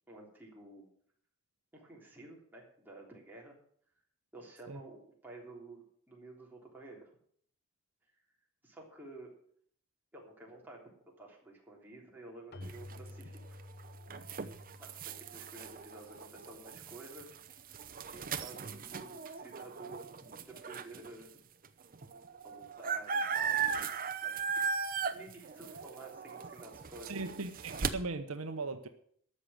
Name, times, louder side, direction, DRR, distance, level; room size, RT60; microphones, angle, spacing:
voice 1, 0.1-0.9 1.7-3.6 4.3-7.2 8.6-9.3 10.1-10.9 11.2-13.6 14.8-17.8 18.1-21.4 22.4-23.8 24.2-27.4, right 2 dB, 10° right, 3.4 m, -52 dB
Keyboard (musical), 12.5-17.0, left 2 dB, 50° left, 0.8 m, -52 dB
sound 1, 12.6-21.1 21.6-21.7 21.9-27.9, right 6 dB, 40° right, 0.8 m, -38 dB
voice 2, 27.0-28.9, right 3 dB, 70° right, 1.0 m, -38 dB
13.0 x 6.5 x 8.8 m
head